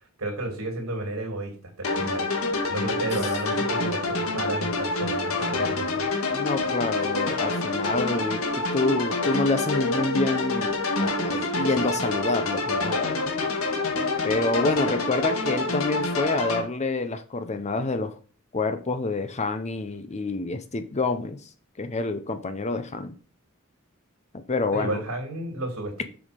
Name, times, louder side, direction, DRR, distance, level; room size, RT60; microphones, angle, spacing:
voice 1, 0.2-2.3 2.7-6.1 24.7-26.0, right 2 dB, 85° right, 2.9 m, -32 dB
sound 1, 1.8-16.6, left 2 dB, 85° left, 1.8 m, -27 dB
voice 2, 6.3-13.2 14.2-18.2 18.5-21.5 21.8-23.2 24.3-25.0, left 3 dB, 35° left, 0.7 m, -27 dB
7.0 x 5.3 x 5.2 m
head